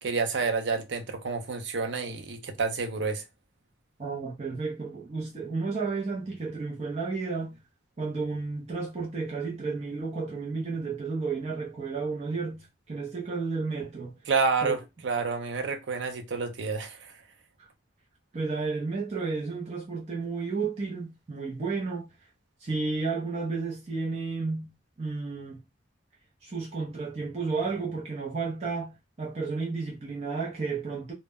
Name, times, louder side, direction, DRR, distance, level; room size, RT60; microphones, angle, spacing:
voice 1, 0.0-3.2 14.3-17.2, right 4 dB, 85° right, 0.5 m, -29 dB
voice 2, 4.0-7.6 8.0-14.1 14.6-14.7 17.6-17.7 18.3-22.1 22.6-24.7 25.0-25.6 26.4-31.1, right 4 dB, 40° right, 0.5 m, -32 dB
2.1 x 2.1 x 3.4 m
head